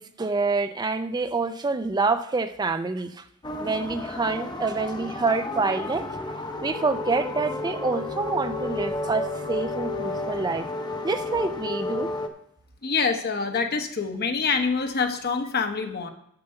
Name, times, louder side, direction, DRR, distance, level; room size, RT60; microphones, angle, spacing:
voice 1, 0.0-3.2 3.6-6.1 6.6-10.7 11.0-12.1, right 3 dB, 20° right, 10 dB, 0.4 m, -27 dB
sound 1, 3.4-12.3, left 2 dB, 20° left, 0.8 m, -32 dB
voice 2, 12.8-16.1, left 5 dB, 50° left, 6 dB, 1.1 m, -26 dB
6.8 x 6.8 x 7.9 m, 0.73 s
head